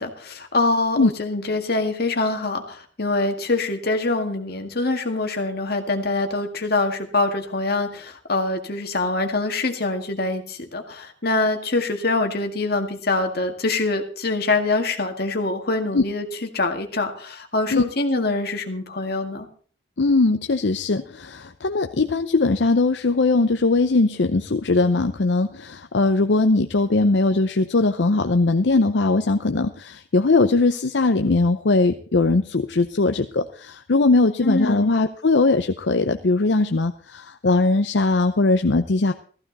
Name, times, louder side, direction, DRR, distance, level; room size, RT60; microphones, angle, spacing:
voice 1, 0.0-19.5 34.4-35.0, left 2 dB, 60° left, 4 dB, 2.0 m, -24 dB
voice 2, 20.0-39.1, left 3 dB, 75° left, 7 dB, 0.7 m, -20 dB
15.0 x 15.0 x 4.1 m, 0.44 s
head